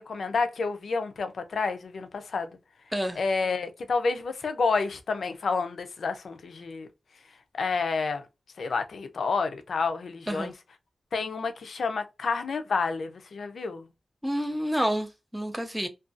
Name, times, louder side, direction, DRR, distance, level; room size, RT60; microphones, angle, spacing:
voice 1, 0.0-2.5 3.2-6.9 7.5-8.2 8.6-10.5 11.1-13.9, left 4 dB, 70° left, 0.4 m, -29 dB
voice 2, 14.2-15.9, equal, ahead, 0.3 m, -29 dB
2.4 x 2.2 x 2.4 m
wide cardioid pair, 170°, 0 cm